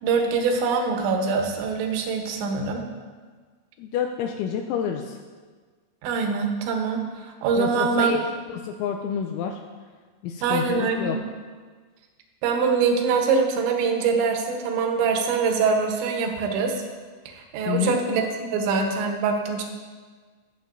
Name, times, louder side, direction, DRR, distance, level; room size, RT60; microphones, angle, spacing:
voice 1, 0.0-2.8 6.0-8.1 10.4-11.2 12.4-16.8 17.3-18.3 18.5-19.6, right 5 dB, 75° right, 3 dB, 3.0 m, -24 dB
voice 2, 3.8-5.2 7.6-8.2 8.5-9.6 10.2-11.2 17.7-18.0, left 8 dB, 85° left, 3 dB, 2.8 m, -28 dB
19.5 x 7.2 x 2.6 m, 1.5 s
omnidirectional pair, 5.7 m